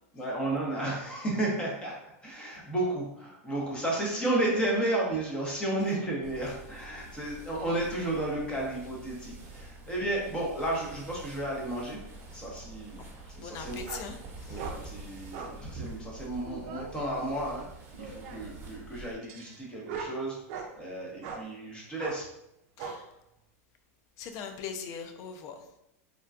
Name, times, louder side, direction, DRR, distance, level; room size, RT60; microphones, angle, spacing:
voice 1, 0.1-12.0 12.3-13.8 14.5-17.6 17.9-20.4 20.8-22.3, right 1 dB, 10° left, -3 dB, 0.8 m, -32 dB
sound 1, 6.2-19.1, right 2 dB, 30° right, 0.9 m, -47 dB
voice 2, 13.4-14.6 22.8-23.1 24.2-25.6, left 6 dB, 40° left, 7 dB, 0.4 m, -41 dB
sound 2, 13.9-14.1 14.6-14.8 15.3-15.6 16.1-16.9 17.9-18.5 19.2-20.7 21.2-21.5 22.0-22.2 22.8-23.0, right 5 dB, 55° right, 0.4 m, -40 dB
3.6 x 2.2 x 2.4 m, 0.82 s
supercardioid pair, 140°, 8 cm